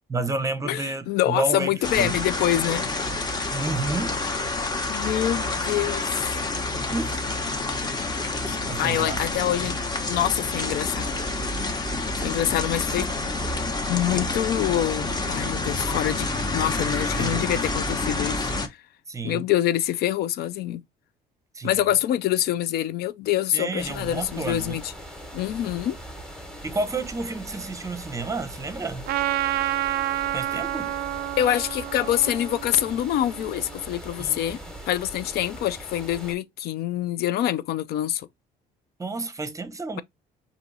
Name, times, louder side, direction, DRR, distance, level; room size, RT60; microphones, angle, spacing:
voice 1, 0.1-2.2 3.5-4.2 6.9-7.3 8.7-9.4 17.2-17.4 19.1-19.4 21.5-21.8 23.5-24.8 26.6-29.0 30.3-31.0 34.2-34.4 39.0-40.0, right 3 dB, 20° right, 0.7 m, -30 dB
voice 2, 0.7-2.9 4.9-6.4 8.5-9.8 10.1-11.2 12.2-13.1 13.9-18.8 19.2-20.8 21.6-24.9 25.3-26.0 31.4-34.6 34.9-38.3, left 12 dB, 70° left, 0.4 m, -26 dB
sound 1, 1.8-18.7, left 2 dB, 25° left, 1.0 m, -28 dB
sound 2, 23.8-36.3, equal, 5° left, 1.2 m, -41 dB
Trumpet, 29.1-33.7, right 13 dB, 65° right, 0.4 m, -29 dB
4.5 x 2.8 x 3.9 m
cardioid pair, 110°, 17 cm